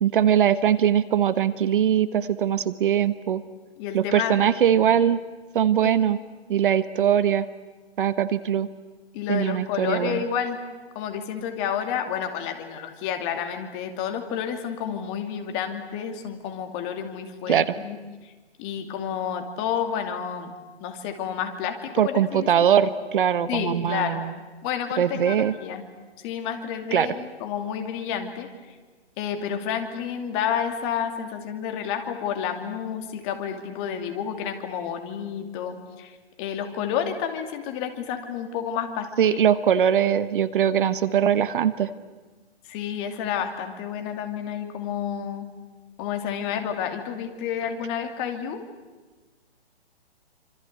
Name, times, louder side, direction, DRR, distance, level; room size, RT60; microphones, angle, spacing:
voice 1, 0.0-3.4 3.9-5.2 5.5-6.2 6.5-7.4 8.0-8.7 9.3-10.2 17.5-17.7 22.0-24.3 25.0-25.5 26.9-27.1 39.2-41.9, right 9 dB, 50° right, 14 dB, 1.2 m, -21 dB
voice 2, 3.8-4.8 5.8-6.0 9.1-10.6 10.9-18.0 18.2-18.3 18.6-20.5 20.8-22.7 23.5-24.2 24.6-25.8 26.2-28.5 29.2-39.4 42.6-45.5 46.0-48.6, left 8 dB, 25° left, 5 dB, 2.6 m, -30 dB
27.5 x 26.0 x 8.1 m, 1.3 s
hypercardioid pair, 155°, 33 cm